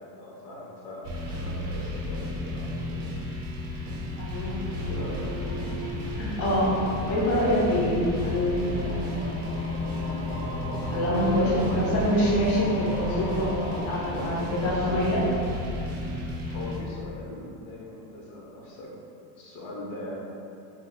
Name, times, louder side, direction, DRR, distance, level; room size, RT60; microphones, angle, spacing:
voice 1, 0.0-3.2 4.6-5.5 11.3-11.9 13.8-14.3 14.5-15.0 16.5-18.9 19.4-20.1, left 1 dB, 85° left, -4 dB, 0.9 m, -40 dB
sound 1, 1.0-16.8, left 1 dB, 35° right, 0.5 m, -33 dB
voice 2, 4.2-4.6 6.2-9.0 10.9-15.2, equal, 30° left, -6 dB, 0.4 m, -25 dB
sound 2, 4.8-14.3, left 1 dB, 65° left, 0.7 m, -37 dB
3.0 x 2.1 x 3.4 m, 2.7 s
cardioid pair, 165°, 47 cm